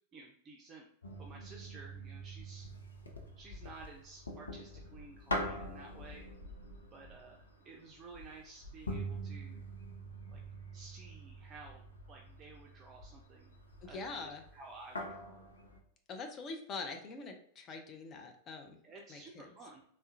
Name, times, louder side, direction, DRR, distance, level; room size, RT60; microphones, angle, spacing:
voice 1, 0.1-0.9 1.2-2.7 3.4-6.3 6.9-9.6 10.3-10.4 10.7-13.5 13.8-15.4 18.8-19.8, right 3 dB, 25° right, 0 dB, 0.5 m, -53 dB
sound 1, 1.0-15.8, equal, 75° left, 0.6 m, -45 dB
voice 2, 13.8-14.4 16.1-18.8 19.1-19.5, left 3 dB, 30° left, 4 dB, 0.6 m, -44 dB
3.5 x 2.1 x 2.6 m, 0.67 s
figure-of-eight pair, 90°, 0 cm